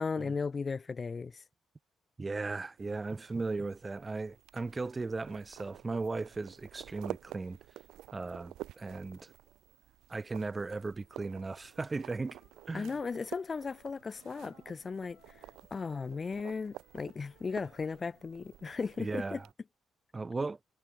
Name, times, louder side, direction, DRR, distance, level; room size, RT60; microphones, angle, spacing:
voice 1, 0.0-1.4 12.7-15.2 15.7-19.4, left 5 dB, 35° left, 0.6 m, -36 dB
voice 2, 2.2-7.6 8.1-9.3 10.1-12.4 12.7-12.9 19.0-19.5 20.1-20.6, right 3 dB, 25° right, 0.7 m, -37 dB
sound 1, 2.8-19.5, right 14 dB, 85° right, 0.3 m, -51 dB
Wind instrument woodwind instrument, 11.0-14.7 15.1-19.1, left 13 dB, 80° left, 4.5 m, -68 dB
cardioid pair, 90°, 0 cm